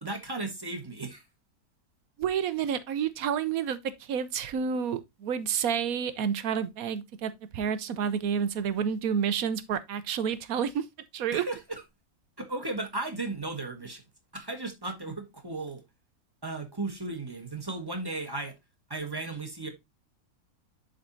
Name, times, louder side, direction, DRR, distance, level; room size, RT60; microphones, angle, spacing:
voice 1, 0.0-1.2 11.3-11.8 12.4-14.0 14.3-15.8 16.4-18.6 18.9-19.7, right 2 dB, 15° right, 1.4 m, -35 dB
voice 2, 2.2-10.9 11.1-11.4, right 7 dB, 75° right, 1.1 m, -29 dB
11.0 x 4.0 x 2.6 m
omnidirectional pair, 1.6 m